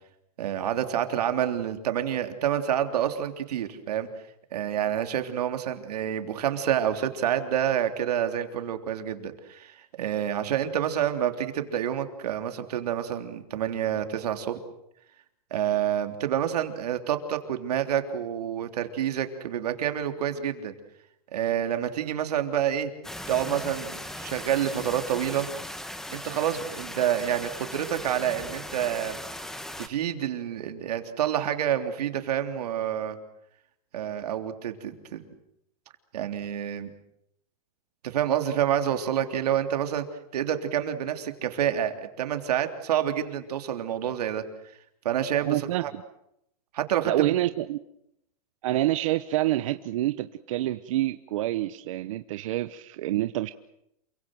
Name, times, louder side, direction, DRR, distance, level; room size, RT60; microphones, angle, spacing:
voice 1, 0.4-4.1 4.5-14.6 15.5-20.7 21.3-22.9 23.3-25.5 26.1-29.2 29.8-33.2 33.9-35.3 36.1-36.9 38.0-40.0 40.3-44.4 45.0-45.9 46.7-47.1, right 10 dB, 85° right, 7 dB, 3.4 m, -28 dB
sound 1, 23.0-29.9, left 1 dB, ahead, 1.2 m, -38 dB
voice 2, 45.4-46.0 47.0-47.8 48.6-53.5, right 15 dB, 55° right, 11 dB, 1.0 m, -27 dB
28.5 x 23.5 x 7.7 m, 0.79 s
supercardioid pair, 170°, 20 cm